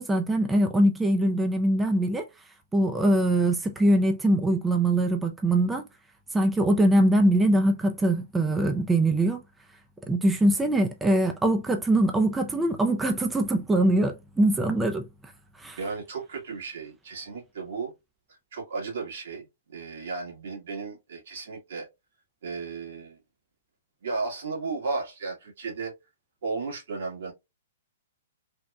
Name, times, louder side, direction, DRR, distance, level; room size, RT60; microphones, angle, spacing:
voice 1, 0.0-2.3 2.7-5.8 6.3-9.4 10.1-15.1 15.6-15.8, right 1 dB, 10° right, 0.3 m, -23 dB
voice 2, 15.8-17.9 18.5-19.5 19.7-21.9 22.4-23.2 24.0-25.9 26.4-27.3, right 4 dB, 70° right, 1.6 m, -34 dB
3.4 x 2.1 x 2.3 m
hypercardioid pair, 135°, 0 cm